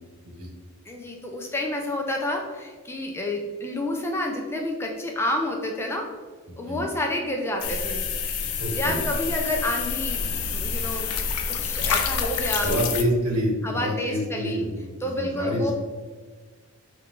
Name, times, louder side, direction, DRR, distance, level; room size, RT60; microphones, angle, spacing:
voice 1, 0.9-6.2 6.6-8.0 8.7-11.1 11.5-12.7 13.6-14.6 15.0-15.7, left 1 dB, 10° left, 1 dB, 0.3 m, -29 dB
voice 2, 6.5-6.8 8.6-9.0 12.6-15.7, equal, 80° right, 0 dB, 1.0 m, -27 dB
sound 1, 7.6-13.0, left 5 dB, 90° left, 0.5 m, -27 dB
4.4 x 2.4 x 3.6 m, 1.4 s
head